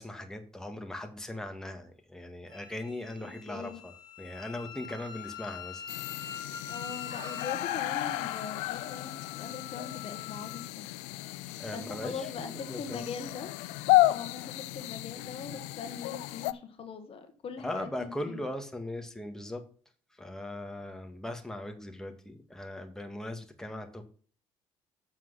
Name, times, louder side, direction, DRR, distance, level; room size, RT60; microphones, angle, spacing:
voice 1, 0.0-5.8 11.6-13.1 17.6-19.6 20.1-24.0, left 1 dB, 5° left, 4 dB, 1.8 m, -39 dB
Wind instrument woodwind instrument, 2.5-10.7, left 7 dB, 35° left, 3.0 m, -44 dB
voice 2, 3.2-3.8 6.7-10.8 11.7-13.6 14.1-18.4, left 5 dB, 55° left, 7 dB, 1.5 m, -41 dB
sound 1, 5.9-16.5, left 18 dB, 85° left, 0.4 m, -32 dB
7.3 x 6.2 x 5.7 m, 0.42 s
supercardioid pair, 65°, 11 cm